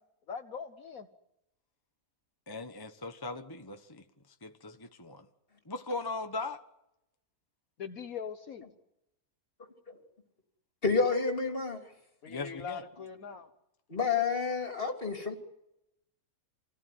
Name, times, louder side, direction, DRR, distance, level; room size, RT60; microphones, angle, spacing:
voice 1, 0.3-1.1 7.8-8.7 12.2-13.5, left 6 dB, 65° left, 7 dB, 1.6 m, -41 dB
voice 2, 2.5-4.0 4.4-5.2 5.6-6.6 12.3-12.8, left 3 dB, 15° left, 6 dB, 1.2 m, -39 dB
voice 3, 10.8-11.8 13.9-15.4, left 4 dB, 35° left, 3 dB, 3.4 m, -29 dB
28.0 x 18.5 x 9.5 m, 0.87 s
omnidirectional pair, 1.6 m